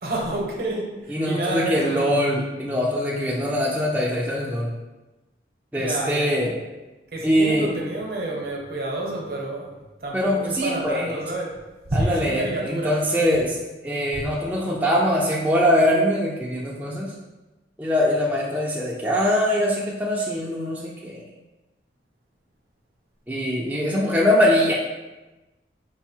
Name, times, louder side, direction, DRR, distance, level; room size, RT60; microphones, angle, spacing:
voice 1, 0.0-2.1 5.8-6.3 7.1-9.7 10.0-11.6 11.9-13.0 14.1-14.3, right 1 dB, 55° right, -1 dB, 0.8 m, -29 dB
voice 2, 1.1-4.7 5.7-6.6 7.2-7.7 10.1-11.2 11.9-13.6 13.8-17.1 17.8-21.2 23.3-24.7, equal, 10° right, -5 dB, 0.4 m, -22 dB
4.5 x 2.0 x 4.3 m, 1.1 s
head